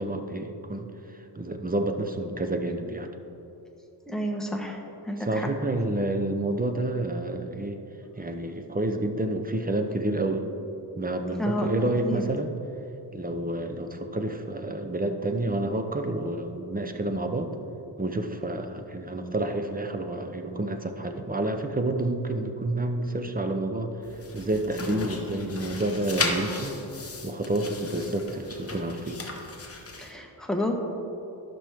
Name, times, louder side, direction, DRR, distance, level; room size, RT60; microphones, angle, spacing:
voice 1, 0.0-3.1 5.2-7.8 8.2-10.4 11.0-12.5 13.1-17.5 18.0-26.8 27.2-29.2, right 2 dB, 20° right, 6 dB, 0.7 m, -29 dB
voice 2, 4.1-4.8 5.1-5.5 11.4-11.7 12.0-12.2 30.0-30.7, left 1 dB, ahead, 1 dB, 1.1 m, -29 dB
sound 1, 24.0-30.1, left 3 dB, 30° left, 1.1 m, -35 dB
13.0 x 6.1 x 3.5 m, 2.9 s
cardioid pair, 85°, 45 cm